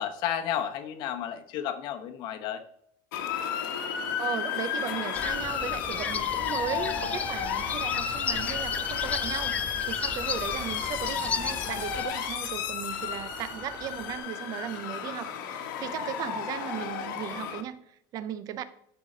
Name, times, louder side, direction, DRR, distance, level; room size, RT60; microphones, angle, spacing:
voice 1, 0.0-2.6 6.7-7.2, left 10 dB, 45° left, 7 dB, 1.0 m, -32 dB
Motor vehicle (road) / Siren, 3.1-17.6, left 8 dB, 80° left, 1.4 m, -32 dB
voice 2, 4.2-9.5 9.8-18.6, right 10 dB, 35° right, 13 dB, 0.6 m, -36 dB
sound 1, 5.1-12.0, left 5 dB, 15° left, 0.3 m, -35 dB
sound 2, 6.7-14.2, right 3 dB, 20° right, 2.3 m, -48 dB
11.5 x 4.9 x 3.9 m, 0.72 s
supercardioid pair, 160°, 11 cm